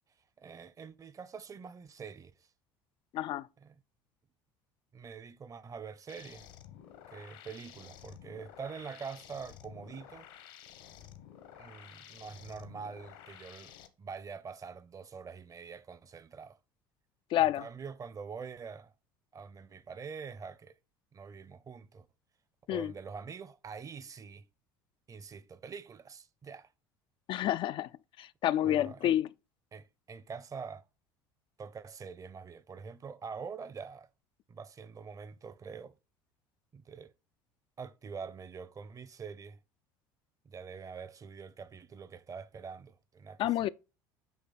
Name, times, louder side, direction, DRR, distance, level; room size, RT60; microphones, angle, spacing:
voice 1, 0.4-2.5 3.6-3.8 4.9-6.5 7.1-10.3 11.5-16.6 17.4-18.9 19.3-20.8 21.1-22.1 22.7-24.4 25.1-26.7 28.6-29.2 29.7-30.8 31.6-34.1 34.5-35.9 36.7-37.1 37.8-39.6 40.4-43.7, right 5 dB, 30° right, 0.7 m, -45 dB
voice 2, 3.1-3.5 17.3-17.7 22.7-22.9 27.3-27.9 28.2-29.3 43.4-43.7, left 12 dB, 50° left, 0.4 m, -29 dB
sound 1, 6.1-13.9, left 10 dB, 75° left, 1.2 m, -52 dB
8.5 x 3.4 x 4.0 m
hypercardioid pair, 70°, 11 cm